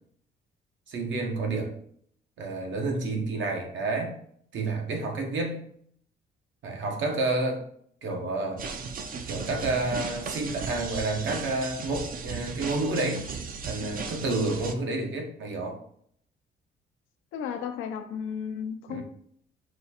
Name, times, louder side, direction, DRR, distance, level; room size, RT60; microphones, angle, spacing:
voice 1, 0.9-1.7 2.4-4.2 4.5-5.6 6.6-7.6 8.0-8.7 9.3-13.3 13.6-15.8 18.9-19.0, right 2 dB, 70° right, 1.0 m, -30 dB
sound 1, 8.6-14.7, right 5 dB, 45° right, 0.5 m, -36 dB
voice 2, 17.3-19.0, left 7 dB, 85° left, 0.5 m, -34 dB
4.2 x 2.4 x 4.2 m
cardioid pair, 90°, 20 cm